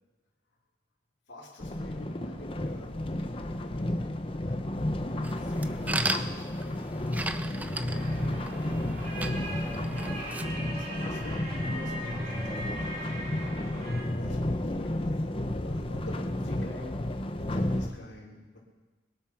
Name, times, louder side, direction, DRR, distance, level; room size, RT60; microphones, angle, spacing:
voice 1, 1.3-4.0 4.4-8.8 9.9-10.6 10.9-15.3 15.6-18.6, left 1 dB, 70° left, -10 dB, 3.6 m, -48 dB
sound 1, 1.6-17.9, left 1 dB, 30° left, 0.8 m, -32 dB
sound 2, 5.2-10.4, right 2 dB, 10° right, 0.5 m, -37 dB
sound 3, 7.9-14.0, right 1 dB, 40° right, 5.4 m, -40 dB
22.0 x 8.2 x 5.9 m, 1.2 s
head